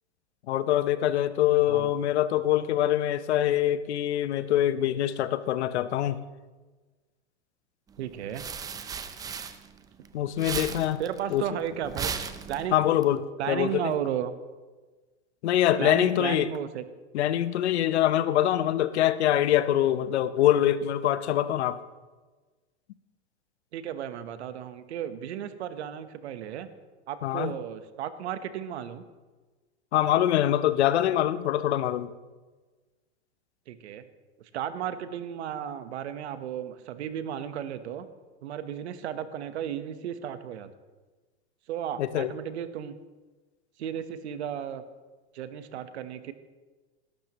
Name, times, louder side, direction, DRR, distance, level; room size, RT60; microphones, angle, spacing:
voice 1, 0.5-6.2 10.1-11.0 11.3-11.4 12.7-13.9 15.4-16.5 17.1-21.8 27.2-27.5 29.9-32.1 42.0-42.3, left 12 dB, 75° left, 14 dB, 0.8 m, -24 dB
sound 1, 8.0-10.1 10.3-13.0, right 6 dB, 10° right, 0.5 m, -36 dB
voice 2, 8.0-8.4 11.0-12.1 12.5-12.7 13.4-14.3 15.8-16.8 23.7-26.7 27.1-29.0 33.7-34.0 34.5-38.1 38.4-40.7 41.7-42.9 43.8-44.8 45.3-46.3, right 9 dB, 75° right, 11 dB, 1.2 m, -34 dB
19.5 x 12.0 x 3.0 m, 1.3 s
supercardioid pair, 140°, 33 cm